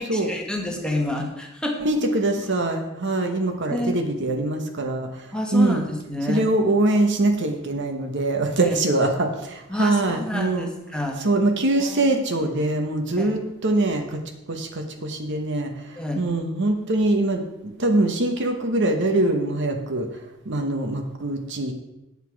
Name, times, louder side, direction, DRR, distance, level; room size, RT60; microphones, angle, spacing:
voice 1, 0.0-1.9 3.7-3.9 5.3-6.5 8.6-8.7 9.7-11.2 11.8-12.2 13.2-13.4 16.0-16.3, left 1 dB, 5° left, 1 dB, 1.3 m, -29 dB
voice 2, 1.8-5.9 6.3-10.7 11.2-14.2 14.5-20.1 20.4-21.7, right 2 dB, 60° right, 5 dB, 1.1 m, -23 dB
8.3 x 8.1 x 4.7 m, 0.93 s
head